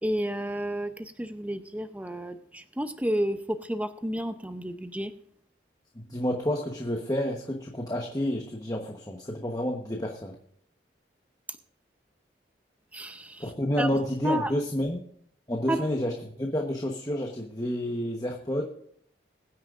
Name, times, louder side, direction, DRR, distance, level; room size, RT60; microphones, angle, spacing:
voice 1, 0.0-5.1 12.9-13.5 13.8-13.9 14.2-14.5 15.7-15.9, equal, 10° right, 8 dB, 0.6 m, -31 dB
voice 2, 5.9-10.3 13.4-15.0 15.5-18.6, left 1 dB, 20° left, 2 dB, 1.1 m, -30 dB
22.0 x 9.7 x 2.5 m, 0.66 s
head